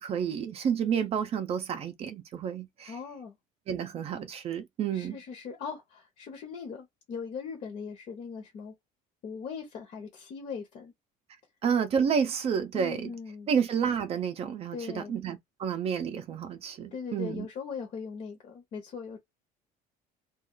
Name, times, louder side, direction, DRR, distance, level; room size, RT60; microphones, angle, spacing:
voice 1, 0.0-2.9 3.7-5.2 11.6-13.1 13.5-17.5, right 7 dB, 35° right, 0.5 m, -30 dB
voice 2, 2.9-3.4 4.9-8.7 9.2-10.9 12.7-13.5 14.7-15.1 16.9-19.2, left 6 dB, 45° left, 0.8 m, -40 dB
2.4 x 2.3 x 3.7 m
cardioid pair, 160°, 17 cm